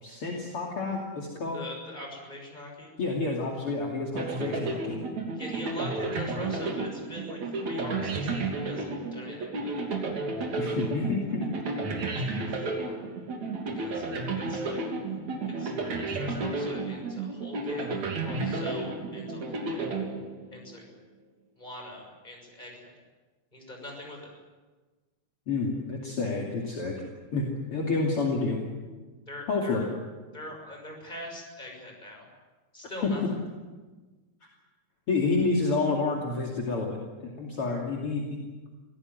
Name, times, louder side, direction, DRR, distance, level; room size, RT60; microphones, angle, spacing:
voice 1, 0.0-1.6 3.0-5.0 10.6-11.5 25.5-27.0 27.3-28.6 29.5-29.9 33.0-33.1 35.1-37.0 37.4-38.4, left 3 dB, 50° left, -1 dB, 3.4 m, -29 dB
voice 2, 1.5-2.9 5.4-9.7 12.0-13.0 13.8-14.0 14.3-14.8 15.4-17.9 18.2-19.9 20.5-20.9 21.6-22.9 23.5-24.3 29.3-29.9 30.3-32.3 32.7-33.2, left 1 dB, 15° left, 1 dB, 6.4 m, -42 dB
sound 1, 4.2-20.7, right 3 dB, 65° right, 4.2 m, -32 dB
25.5 x 17.0 x 9.4 m, 1.3 s
omnidirectional pair, 3.4 m